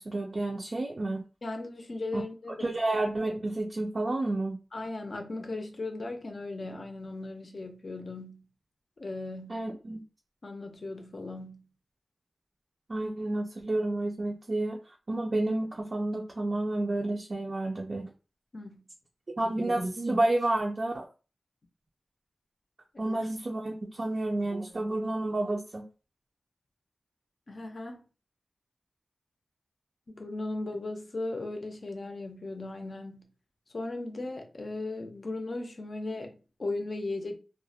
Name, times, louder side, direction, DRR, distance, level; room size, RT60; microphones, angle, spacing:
voice 1, 0.0-1.2 2.1-2.2 2.6-4.6 9.5-10.0 12.9-18.1 19.4-21.0 23.0-25.8, right 2 dB, 50° right, 0.4 m, -30 dB
voice 2, 1.4-2.7 4.7-8.5 9.0-9.6 10.4-11.7 18.5-18.9 23.0-23.2 27.5-28.1 30.1-33.3 33.7-37.3, left 2 dB, 50° left, 0.5 m, -37 dB
2.3 x 2.0 x 2.6 m
wide cardioid pair, 75°, 0 cm